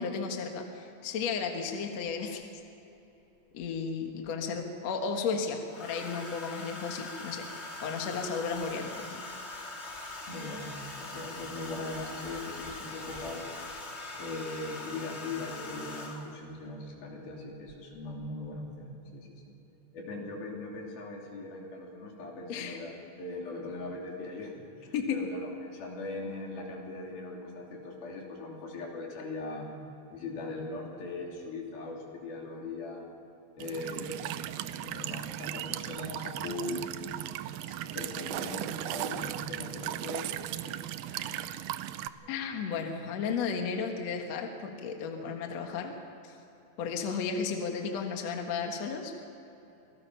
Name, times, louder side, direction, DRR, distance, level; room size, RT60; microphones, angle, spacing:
voice 1, 0.0-2.5 3.5-7.5 7.8-9.2 22.5-22.8 24.9-25.2 42.3-45.9 46.2-46.3 46.8-49.1, left 5 dB, 55° left, 3 dB, 2.5 m, -34 dB
Domestic sounds home sounds, 3.6-4.3 5.7-16.5 17.7-17.9 18.2-18.6, left 2 dB, 35° left, 1.0 m, -42 dB
voice 2, 10.3-13.5 14.1-19.3 19.9-29.7 30.1-33.1 33.5-34.4 34.7-36.9 37.7-40.8 41.1-41.3 42.2-42.3, left 2 dB, 85° left, -1 dB, 4.9 m, -40 dB
Walk footsteps / Chirp tweet / Stream, 33.6-42.1, right 13 dB, 80° right, 2.3 m, -37 dB
27.0 x 19.5 x 5.7 m, 3.0 s
omnidirectional pair, 4.2 m